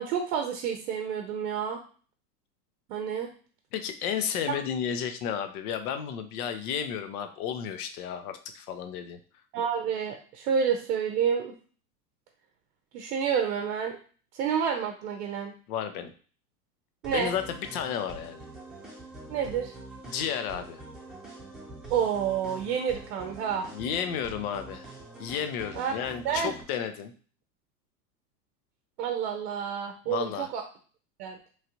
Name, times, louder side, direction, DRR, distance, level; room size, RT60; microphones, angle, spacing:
voice 1, 0.0-1.8 2.9-3.3 4.5-4.6 9.5-11.5 12.9-14.0 14.3-15.5 17.0-17.3 19.3-19.7 21.9-23.7 25.8-25.9 26.2-26.5 29.0-30.6 31.2-31.4, right 7 dB, 65° right, 3 dB, 0.6 m, -29 dB
voice 2, 3.7-9.2 15.7-16.1 17.1-18.4 20.1-20.8 23.7-24.9 25.2-27.1 30.1-30.5, left 8 dB, 65° left, 8 dB, 0.7 m, -32 dB
sound 1, 17.0-26.6, right 2 dB, ahead, 0.9 m, -45 dB
3.1 x 2.4 x 2.9 m, 0.40 s
hypercardioid pair, 110°, 48 cm